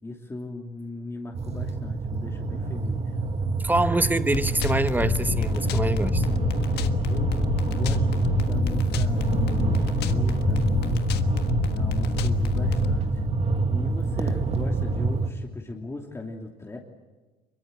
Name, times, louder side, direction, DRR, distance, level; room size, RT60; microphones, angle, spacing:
voice 1, 0.0-3.1 7.1-7.5 7.7-11.1 11.7-13.2 13.7-16.8, left 2 dB, 15° left, 0 dB, 2.9 m, -38 dB
sound 1, 1.3-15.3, right 3 dB, 40° right, 2.0 m, -26 dB
voice 2, 3.6-6.3, right 2 dB, 10° right, 11 dB, 1.3 m, -25 dB
sound 2, 4.3-13.0, left 10 dB, 80° left, 1.4 m, -29 dB
24.5 x 23.0 x 8.3 m, 1.3 s
cardioid pair, 110°, 17 cm